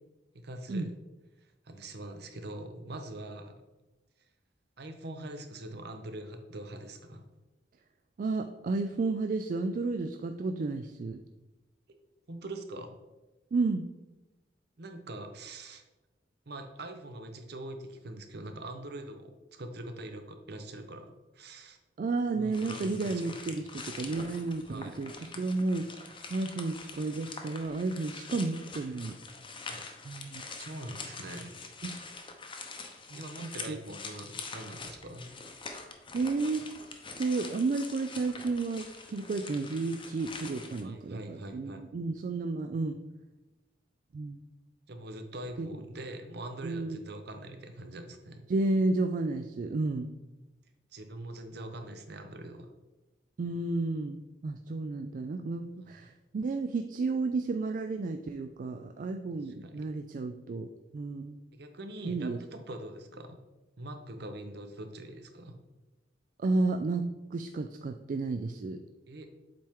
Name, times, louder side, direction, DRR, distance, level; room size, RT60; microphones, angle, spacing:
voice 1, 0.3-0.9 1.6-3.5 4.8-7.2 10.4-10.5 11.9-12.0 12.3-13.0 14.8-15.8 16.5-21.8 22.3-23.1 24.7-25.0 29.7-29.8 30.6-31.6 33.1-35.3 40.8-41.9 44.9-48.4 50.9-52.7 59.4-59.8 61.5-63.4 63.8-65.6 69.1-69.3, right 1 dB, 60° right, 7 dB, 0.8 m, -43 dB
voice 2, 8.2-11.2 13.5-13.8 22.0-29.2 30.0-30.4 33.1-33.2 33.7-33.8 36.1-36.6 37.2-43.0 44.1-44.4 45.6-45.7 46.6-47.0 48.5-50.1 53.4-61.4 62.0-62.4 66.4-67.1 67.3-68.8, right 3 dB, 45° right, 6 dB, 0.3 m, -32 dB
sound 1, 22.5-40.8, left 4 dB, 30° left, 0.7 m, -45 dB
7.6 x 4.4 x 3.6 m, 1.1 s
head